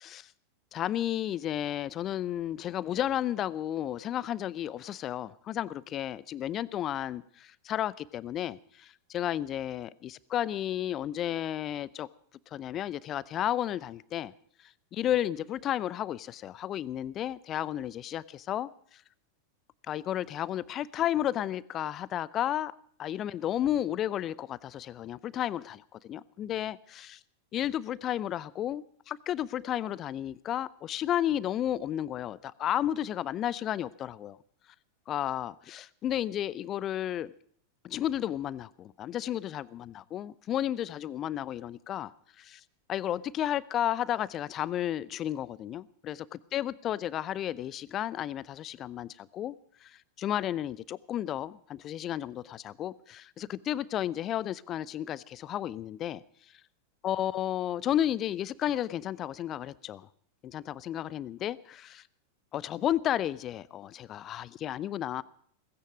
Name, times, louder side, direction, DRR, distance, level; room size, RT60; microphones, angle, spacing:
voice 1, 0.7-12.1 12.5-14.3 14.9-18.7 19.9-22.7 23.0-27.2 27.5-34.4 35.1-37.3 37.8-42.1 42.4-42.6 42.9-56.2 57.0-60.1 60.4-62.0 62.5-65.2, left 11 dB, 30° left, 0.6 m, -32 dB
17.5 x 16.0 x 5.0 m
figure-of-eight pair, 90°, 0 cm